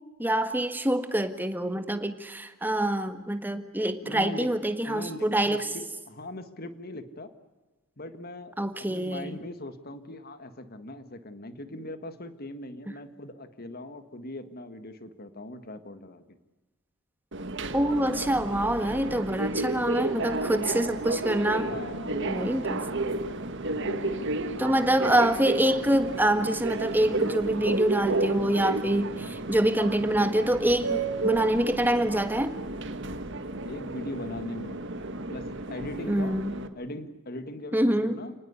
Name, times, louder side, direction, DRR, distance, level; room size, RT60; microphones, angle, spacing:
voice 1, 0.2-5.7 8.6-9.4 17.7-21.7 22.3-22.8 24.6-32.5 36.1-36.5 37.7-38.2, right 1 dB, 10° right, 9 dB, 1.6 m, -26 dB
voice 2, 4.0-4.5 4.9-7.3 8.0-8.5 8.8-16.4 21.5-22.7 23.7-24.3 33.7-34.8 35.3-36.4 36.8-38.3, left 1 dB, 45° left, 10 dB, 1.7 m, -40 dB
Subway metro underground, 17.3-36.7, right 2 dB, 60° right, 1.8 m, -32 dB
30.0 x 19.5 x 8.3 m, 1.1 s
head